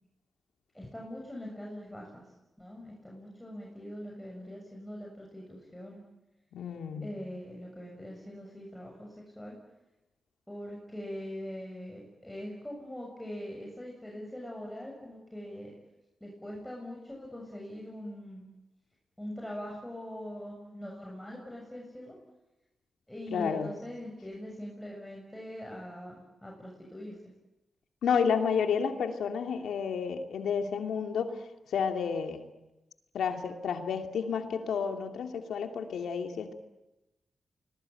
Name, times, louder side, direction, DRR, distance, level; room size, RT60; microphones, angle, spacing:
voice 1, 0.7-2.2 2.6-6.0 7.0-9.6 10.5-15.7 16.2-18.5 19.2-22.1 23.1-27.2, equal, 10° left, -1 dB, 7.3 m, -42 dB
voice 2, 6.5-7.1 23.3-23.7 28.0-31.4 31.7-32.4 33.1-36.5, left 6 dB, 90° left, 5 dB, 2.6 m, -31 dB
26.5 x 21.5 x 9.2 m, 0.98 s
cardioid pair, 65°, 0 cm